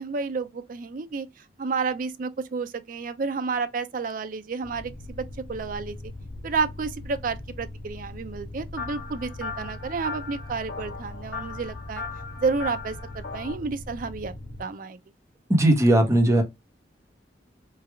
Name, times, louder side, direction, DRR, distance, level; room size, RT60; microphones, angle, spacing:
voice 1, 0.0-6.0 6.4-12.0 12.4-15.0, right 4 dB, 50° right, 0.4 m, -31 dB
sound 1, 4.6-14.6, left 1 dB, 65° left, 1.1 m, -40 dB
sound 2, 8.8-13.6, left 4 dB, 90° left, 0.8 m, -38 dB
voice 2, 15.5-16.4, right 1 dB, 15° right, 0.9 m, -18 dB
3.3 x 2.3 x 3.3 m
head